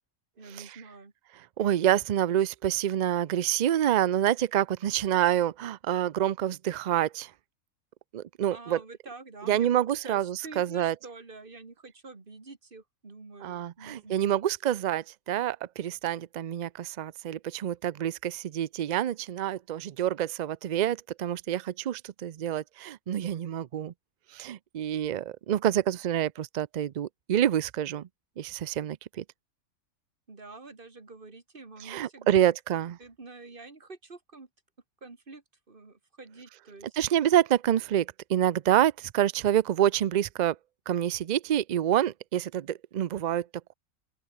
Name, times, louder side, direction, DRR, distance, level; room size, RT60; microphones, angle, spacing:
voice 1, 0.4-1.1 8.5-14.4 30.3-32.4 33.0-34.5 35.0-37.2, right 3 dB, 40° right, 2.5 m, -47 dB
voice 2, 1.6-7.3 8.1-8.8 9.5-10.9 13.4-23.9 24.3-28.1 28.4-29.2 31.8-33.0 36.9-40.6 40.9-43.5, right 11 dB, 90° right, 0.4 m, -27 dB
open air
omnidirectional pair, 1.4 m